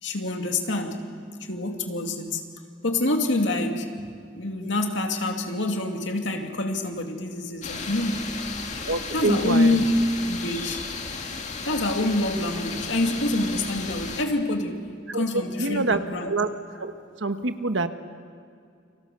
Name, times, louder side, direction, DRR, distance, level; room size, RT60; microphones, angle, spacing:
voice 1, 0.0-1.0 1.5-2.4 2.8-4.1 4.3-8.2 9.1-9.9 10.3-10.9 11.6-14.8 15.1-16.3, left 2 dB, 80° left, 4 dB, 2.4 m, -26 dB
sound 1, 7.6-14.2, left 4 dB, 40° left, 2.1 m, -34 dB
voice 2, 8.9-9.8 15.1-16.0 16.3-16.5 16.8-16.9 17.2-17.9, right 3 dB, 85° right, 9 dB, 1.3 m, -26 dB
29.5 x 24.5 x 6.8 m, 2.3 s
head